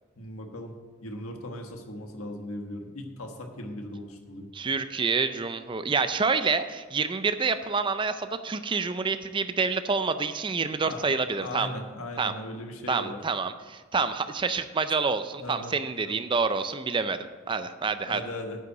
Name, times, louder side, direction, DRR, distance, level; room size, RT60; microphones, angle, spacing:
voice 1, 0.1-0.7 1.0-4.5 10.8-11.0 11.4-13.2 15.3-16.1 18.0-18.7, left 1 dB, 90° left, 4 dB, 1.4 m, -38 dB
voice 2, 4.5-11.7 12.2-12.3 12.9-18.2, right 4 dB, 25° right, 11 dB, 0.4 m, -28 dB
9.3 x 5.6 x 7.9 m, 1.4 s
head